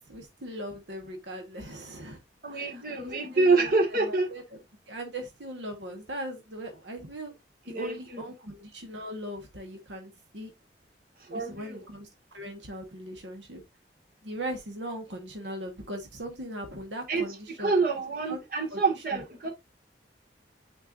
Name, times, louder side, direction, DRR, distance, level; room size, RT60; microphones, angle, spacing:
voice 1, 0.1-2.2 2.5-4.4 4.9-7.3 7.7-10.5 11.3-12.1 12.3-13.6 14.2-17.7 18.3-18.4 18.7-18.8 19.1-19.2, right 1 dB, 80° right, 1.4 m, -39 dB
voice 2, 2.4-4.3 7.7-8.2 11.3-11.8 17.1-17.2 17.6-19.5, right 3 dB, 50° right, 1.9 m, -26 dB
8.9 x 4.5 x 2.6 m
head